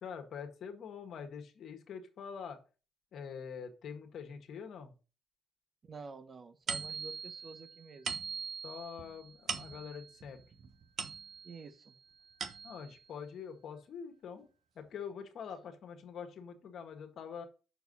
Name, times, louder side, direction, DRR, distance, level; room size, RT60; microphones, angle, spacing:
voice 1, 0.0-2.6 3.1-4.9 8.6-10.4 12.6-14.5 14.7-17.5, left 7 dB, 65° left, 6 dB, 1.6 m, -45 dB
voice 2, 5.8-8.2 11.4-11.9, right 4 dB, 40° right, 11 dB, 1.0 m, -50 dB
sound 1, 6.7-11.7 12.1-13.0, right 6 dB, 60° right, 1.2 m, -41 dB
6.6 x 4.7 x 5.3 m, 0.33 s
cardioid pair, 90°, 0 cm